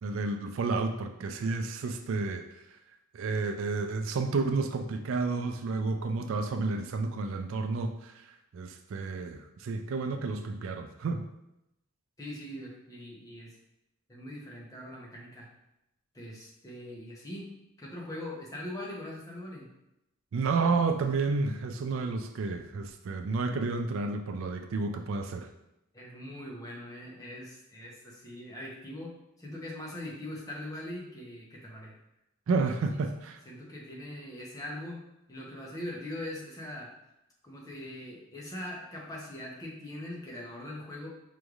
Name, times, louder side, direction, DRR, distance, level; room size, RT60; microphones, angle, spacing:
voice 1, 0.0-2.4 3.1-8.1 8.5-11.2 20.3-25.5 32.5-33.4, right 3 dB, 65° right, 6 dB, 0.3 m, -31 dB
voice 2, 12.2-13.6 14.1-15.5 16.1-17.5 17.8-19.7 25.9-32.0 32.9-33.0 33.4-35.0 35.3-36.9 37.4-41.1, left 1 dB, 15° left, -3 dB, 0.7 m, -41 dB
5.1 x 3.1 x 2.4 m, 0.87 s
head